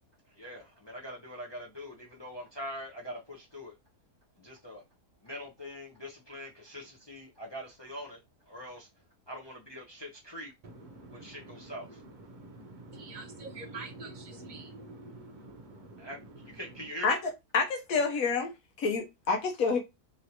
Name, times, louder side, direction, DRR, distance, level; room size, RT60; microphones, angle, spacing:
voice 1, 0.4-3.7 4.4-4.8 5.2-8.2 8.5-8.9 9.3-10.5 11.1-12.0 16.0-17.2, equal, 40° left, 0.3 m, -43 dB
voice 2, 10.6-11.8 12.3-16.6, right 2 dB, 65° right, 0.4 m, -46 dB
voice 3, 17.5-18.5 18.8-19.8, left 4 dB, 70° left, 1.1 m, -28 dB
3.1 x 2.8 x 2.7 m
omnidirectional pair, 1.6 m